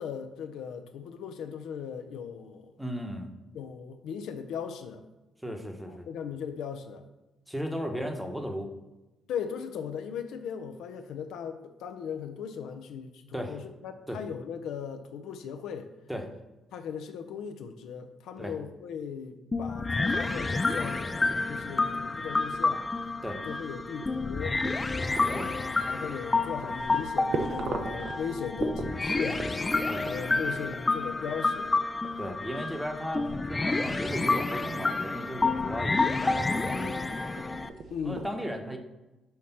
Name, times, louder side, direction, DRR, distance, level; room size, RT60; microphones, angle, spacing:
voice 1, 0.0-2.7 3.5-5.0 5.9-7.0 7.8-8.0 9.3-15.9 16.7-22.9 23.4-24.6 25.1-29.5 30.0-31.8 37.9-38.3, left 7 dB, 85° left, 7 dB, 0.6 m, -38 dB
voice 2, 2.8-3.3 5.4-6.1 7.5-8.7 13.3-13.6 14.1-14.2 16.1-16.3 18.4-18.5 23.2-23.4 25.3-25.5 29.9-30.1 32.2-37.2 38.0-38.8, equal, 5° right, 4 dB, 0.9 m, -36 dB
sound 1, 19.5-37.7, left 3 dB, 25° left, 0.4 m, -29 dB
sound 2, 20.0-38.2, right 3 dB, 60° right, 0.8 m, -42 dB
5.7 x 3.2 x 5.7 m, 1.0 s
cardioid pair, 90°, 0 cm